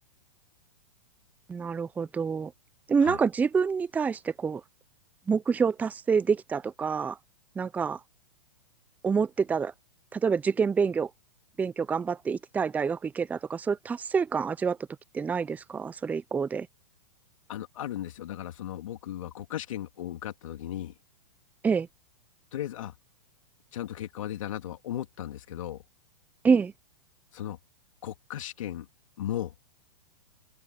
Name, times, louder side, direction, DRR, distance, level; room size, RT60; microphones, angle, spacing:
voice 1, 1.5-2.5 2.9-4.6 5.3-7.2 7.6-8.0 9.0-9.7 10.1-11.1 11.6-14.8 15.1-16.7 21.6-21.9 26.4-26.7, right 5 dB, 10° right, 0.5 m, -27 dB
voice 2, 17.5-20.9 22.5-22.9 23.7-25.8 27.3-27.6 28.0-28.9 29.2-29.5, left 12 dB, 70° left, 3.0 m, -36 dB
open air
hypercardioid pair, 130°, 17 cm